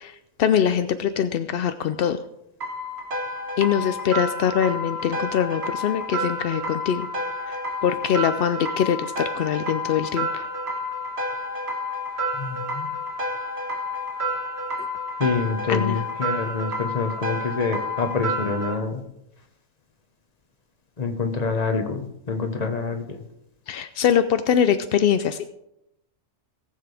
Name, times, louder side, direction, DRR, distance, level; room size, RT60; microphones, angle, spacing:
voice 1, 0.0-2.2 3.6-7.1 7.4-7.6 7.8-10.5 15.7-16.0 23.7-25.4, left 8 dB, 70° left, 10 dB, 0.5 m, -23 dB
sound 1, 2.6-18.7, left 1 dB, 50° right, 1.5 m, -30 dB
voice 2, 12.4-12.9 15.2-19.0 21.0-22.0 22.3-23.2, left 4 dB, 30° left, 5 dB, 1.2 m, -26 dB
18.0 x 7.6 x 3.4 m, 0.84 s
omnidirectional pair, 1.5 m